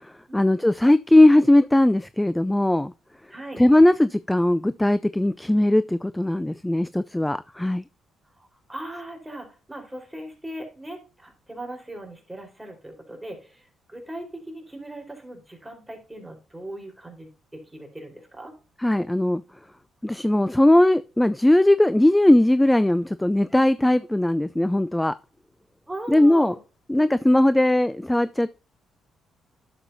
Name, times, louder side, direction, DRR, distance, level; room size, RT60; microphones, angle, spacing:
voice 1, 0.3-2.9 3.6-7.8 18.8-19.4 20.0-25.1 26.1-26.5 26.9-28.5, left 1 dB, 10° left, 0.4 m, -19 dB
voice 2, 3.3-3.6 8.4-18.5 25.9-26.6 27.1-27.2, right 1 dB, 10° right, 4.1 m, -39 dB
11.0 x 7.2 x 2.7 m
cardioid pair, 90°, 0 cm